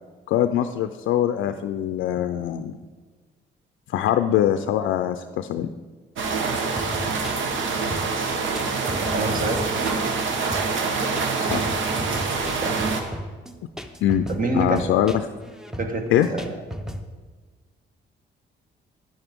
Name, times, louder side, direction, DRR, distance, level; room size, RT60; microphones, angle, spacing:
voice 1, 0.3-2.8 3.9-5.7 11.5-11.7 14.0-14.3 14.5-15.2 16.1-16.3, left 11 dB, 80° left, 8 dB, 0.4 m, -22 dB
sound 1, 6.2-13.0, right 4 dB, 80° right, 1.1 m, -25 dB
sound 2, 6.8-17.0, equal, 5° right, 0.7 m, -35 dB
voice 2, 9.1-9.6 12.6-12.8 14.3-14.8 15.8-16.6, right 3 dB, 45° right, 5 dB, 1.4 m, -26 dB
9.9 x 9.5 x 3.6 m, 1.4 s
cardioid pair, 90°, 20 cm